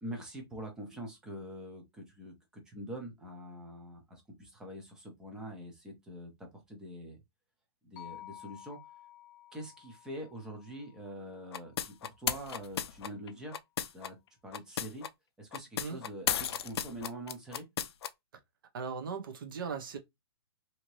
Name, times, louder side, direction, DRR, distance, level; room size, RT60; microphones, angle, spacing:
voice 1, 0.0-7.2 7.8-8.8 9.5-13.6 13.9-14.2 14.4-15.1 15.4-17.7, equal, 5° right, 0.5 m, -44 dB
sound 1, 8.0-12.2, left 13 dB, 40° left, 0.8 m, -53 dB
sound 2, 11.5-14.1 14.5-15.1 15.5-18.1, left 9 dB, 70° left, 0.4 m, -34 dB
voice 2, 18.7-20.0, right 5 dB, 55° right, 0.7 m, -38 dB
2.8 x 2.6 x 3.0 m
hypercardioid pair, 170°, 14 cm